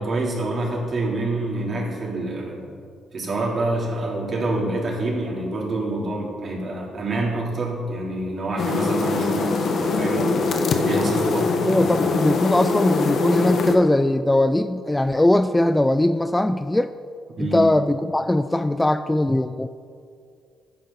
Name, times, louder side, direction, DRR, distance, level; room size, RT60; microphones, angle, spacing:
voice 1, 0.0-2.7 3.1-12.0 17.4-17.7, right 2 dB, 45° right, -3 dB, 3.4 m, -27 dB
sound 1, 8.6-13.8, left 4 dB, 60° left, 1.3 m, -22 dB
voice 2, 11.7-16.9 17.4-19.7, left 1 dB, 10° left, 11 dB, 0.4 m, -20 dB
15.0 x 10.5 x 4.1 m, 2.3 s
cardioid pair, 90°, 0 cm